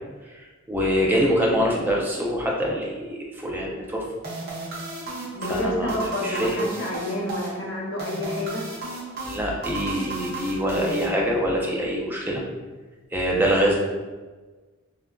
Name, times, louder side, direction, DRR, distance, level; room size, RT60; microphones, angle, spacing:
voice 1, 0.7-4.0 5.5-6.6 9.2-12.4 13.1-13.8, equal, 10° right, -2 dB, 0.4 m, -24 dB
sound 1, 4.2-11.6, right 2 dB, 50° right, 0.6 m, -35 dB
voice 2, 5.3-8.6, left 1 dB, 65° left, -2 dB, 0.6 m, -29 dB
3.5 x 2.5 x 2.2 m, 1.3 s
head